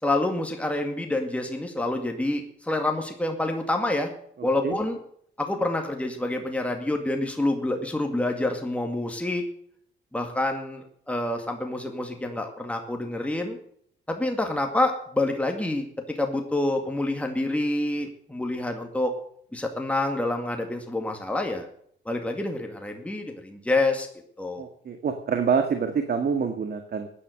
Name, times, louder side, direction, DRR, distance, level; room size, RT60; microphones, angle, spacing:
voice 1, 0.0-4.1 4.4-5.0 5.4-9.4 10.1-13.6 14.1-19.1 19.5-21.7 22.1-24.1 24.4-24.7, left 2 dB, 5° left, 3 dB, 2.2 m, -27 dB
voice 2, 24.6-27.1, right 6 dB, 50° right, 6 dB, 1.8 m, -26 dB
14.5 x 9.9 x 6.6 m, 0.65 s
cardioid pair, 90°, 20 cm